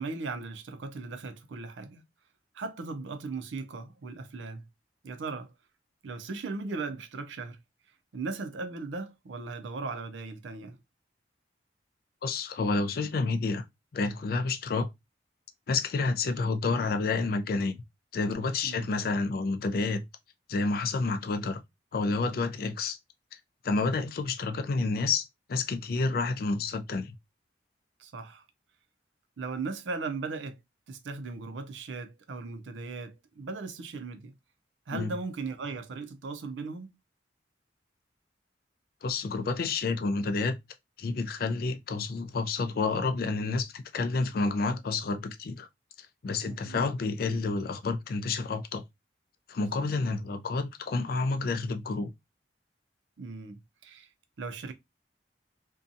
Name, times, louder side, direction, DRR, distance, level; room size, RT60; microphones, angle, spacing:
voice 1, 0.0-2.0 2.5-4.7 5.0-5.5 6.0-7.6 8.1-10.8 18.6-18.9 28.0-28.4 29.4-30.6 30.9-34.4 34.9-36.9 46.4-46.8 49.8-49.9 53.2-54.1 54.4-54.7, right 3 dB, 90° right, 0.5 m, -38 dB
voice 2, 12.2-13.6 13.9-14.9 15.7-17.8 18.1-20.0 20.5-21.6 21.9-23.0 23.6-27.2 34.9-35.1 39.0-40.6 41.0-45.7 46.0-48.8 49.5-52.1, left 3 dB, 55° left, 0.4 m, -29 dB
2.6 x 2.3 x 2.5 m
head